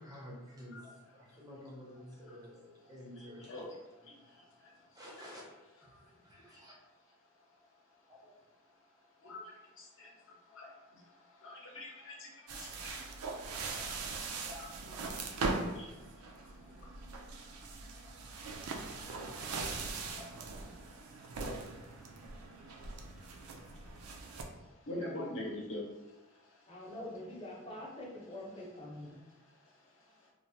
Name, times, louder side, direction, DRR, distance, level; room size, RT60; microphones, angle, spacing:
voice 1, 0.0-3.7 4.0-4.2 4.9-5.4 5.8-6.7 8.1-8.3, equal, 15° right, -3 dB, 0.5 m, -51 dB
voice 2, 3.4-3.8 4.0-4.7 5.9-6.1 6.4-6.6 9.2-26.9 28.2-30.3, left 1 dB, 60° left, -2 dB, 0.7 m, -49 dB
sound 1, 12.5-24.4, right 3 dB, 80° right, 0.4 m, -41 dB
voice 3, 26.7-29.2, left 1 dB, 25° left, -4 dB, 0.7 m, -45 dB
3.1 x 2.1 x 2.7 m, 1.0 s
head